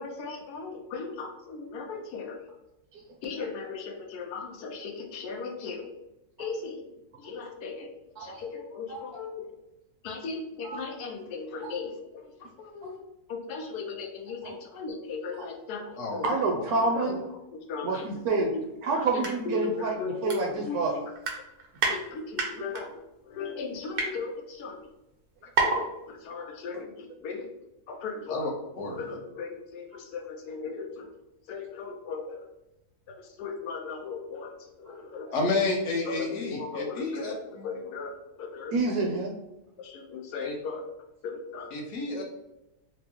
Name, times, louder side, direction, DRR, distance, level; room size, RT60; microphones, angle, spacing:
voice 1, 0.0-2.4 3.2-5.9 6.4-6.9 7.2-7.9 8.2-9.6 10.0-12.3 12.6-13.0 13.3-16.3 16.9-17.1 17.5-18.1 18.4-18.6 19.1-21.0 21.9-23.0 23.3-24.9 25.6-27.5 27.9-28.5 29.0-31.1 31.5-32.4 33.1-35.5 36.0-39.0 39.8-40.8 41.2-41.9, left 4 dB, 90° left, 3 dB, 1.2 m, -37 dB
voice 2, 2.9-3.4 7.2-7.5 8.2-8.4 8.9-9.0 10.6-10.8 11.6-11.7 12.8-12.9 14.4-14.5 16.2-17.2 17.8-18.5 18.8-21.0 26.3-26.5 35.3-35.4 38.7-39.3, right 3 dB, 75° right, 1 dB, 1.0 m, -29 dB
voice 3, 16.0-16.3 17.0-17.1 28.3-28.5 28.7-29.2 35.3-37.7 40.4-40.5 41.7-42.2, left 3 dB, 60° left, 0 dB, 1.0 m, -30 dB
sound 1, 19.1-19.3 19.7-19.8 20.3-20.9 21.1-22.0 22.4-22.8 23.4-24.1 24.8-24.9 25.1-25.2 25.5-25.9 26.2-26.3, right 3 dB, 60° right, 0.6 m, -28 dB
4.5 x 2.0 x 2.9 m, 0.91 s
omnidirectional pair, 1.7 m